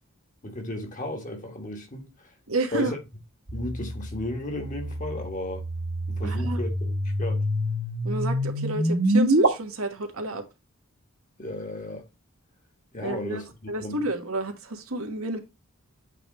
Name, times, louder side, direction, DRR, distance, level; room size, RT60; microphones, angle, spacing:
voice 1, 0.4-2.1 2.7-3.0 3.5-5.6 6.1-7.4 11.4-12.0 12.9-14.1, left 1 dB, 40° left, 1.8 m, -34 dB
voice 2, 2.5-2.9 6.2-6.6 8.0-10.4 13.0-13.4 13.7-15.4, right 2 dB, 90° right, 1.4 m, -30 dB
sound 1, 3.5-9.5, right 1 dB, 70° right, 1.6 m, -26 dB
8.3 x 3.4 x 4.1 m
head